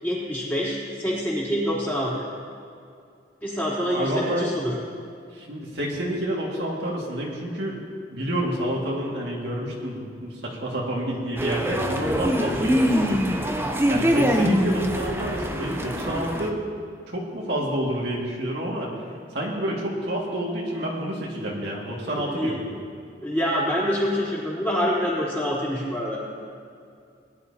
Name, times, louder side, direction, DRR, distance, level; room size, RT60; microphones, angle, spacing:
voice 1, 0.0-2.3 3.4-4.7 22.3-22.6 23.2-26.2, equal, 10° left, -8 dB, 3.5 m, -26 dB
voice 2, 3.9-4.5 5.3-7.8 8.1-13.2 13.9-16.6 17.1-18.9 19.3-22.7, right 1 dB, 65° right, -3 dB, 2.0 m, -28 dB
sound 1, 11.4-16.5, equal, 15° right, 0.7 m, -24 dB
19.5 x 11.0 x 2.8 m, 2.4 s
head